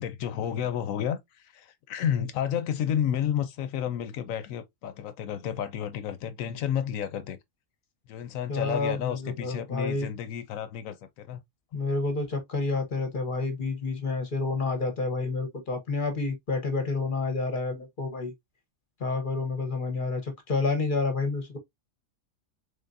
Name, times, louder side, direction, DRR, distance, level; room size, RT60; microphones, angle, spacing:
voice 1, 0.0-7.4 8.1-11.4, left 9 dB, 75° left, 1.0 m, -31 dB
voice 2, 8.5-10.1 11.7-18.3 19.0-21.6, left 3 dB, 40° left, 0.9 m, -29 dB
3.6 x 3.4 x 2.5 m
omnidirectional pair, 1.5 m